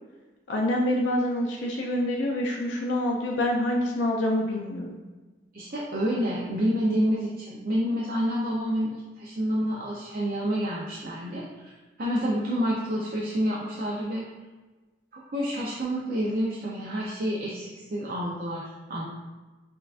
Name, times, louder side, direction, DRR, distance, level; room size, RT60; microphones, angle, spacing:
voice 1, 0.5-5.0, left 1 dB, 85° left, -1 dB, 0.4 m, -26 dB
voice 2, 5.5-11.5 12.0-14.2 15.1-19.0, equal, 50° right, -5 dB, 0.5 m, -28 dB
5.8 x 2.3 x 2.4 m, 1.2 s
head